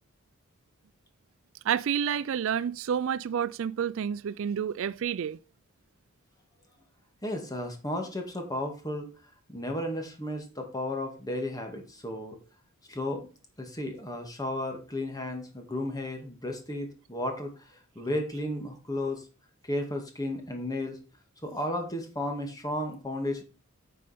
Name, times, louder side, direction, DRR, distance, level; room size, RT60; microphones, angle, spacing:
voice 1, 1.6-5.4, right 8 dB, 65° right, 0.3 m, -29 dB
voice 2, 7.2-9.1 9.5-12.4 12.9-13.3 13.6-17.5 18.0-19.2 19.6-21.0 21.4-23.4, left 1 dB, 15° left, 2.0 m, -33 dB
9.9 x 5.3 x 5.1 m
head